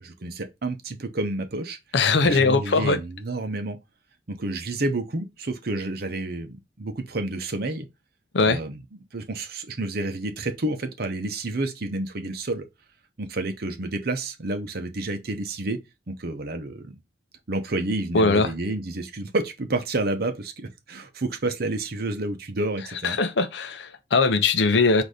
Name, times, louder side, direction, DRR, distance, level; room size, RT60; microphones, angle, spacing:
voice 1, 0.0-1.8 2.2-3.8 4.3-7.9 8.4-8.8 9.1-12.7 13.2-15.8 16.1-16.9 17.5-23.2, right 2 dB, 55° right, 0.8 m, -29 dB
voice 2, 1.9-3.0 8.3-8.6 18.1-18.5 23.0-25.0, left 3 dB, 65° left, 0.6 m, -20 dB
4.0 x 2.7 x 4.8 m
head